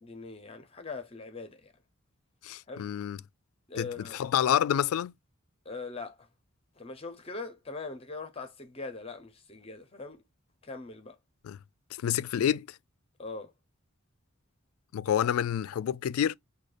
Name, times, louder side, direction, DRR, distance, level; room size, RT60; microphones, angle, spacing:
voice 1, 0.0-1.7 2.7-2.9 3.7-4.2 5.6-6.3 6.8-10.2 10.6-11.2 13.2-13.5, left 3 dB, 25° left, 0.6 m, -41 dB
voice 2, 2.4-3.2 3.8-5.1 11.4-11.6 12.0-12.7 14.9-16.3, left 9 dB, 90° left, 0.3 m, -28 dB
6.3 x 2.2 x 2.5 m
head